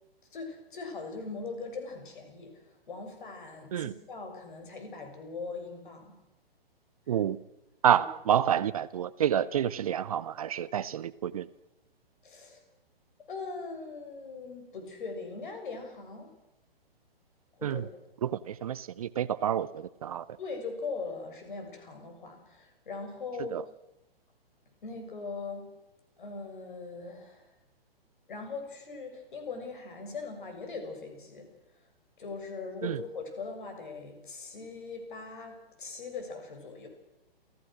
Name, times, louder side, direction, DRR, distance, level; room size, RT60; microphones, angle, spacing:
voice 1, 0.3-6.1 12.2-12.6 13.3-16.3 17.6-17.9 20.4-23.6 24.8-25.7 26.2-27.5 28.3-31.5 31.7-31.8 32.2-36.9, left 4 dB, 55° left, 5 dB, 6.6 m, -40 dB
voice 2, 7.8-11.5 17.6-17.8 18.2-20.3 23.5-23.6 32.8-33.0, right 9 dB, 35° right, 17 dB, 0.6 m, -28 dB
29.0 x 15.5 x 6.3 m, 0.92 s
figure-of-eight pair, 125°, 30 cm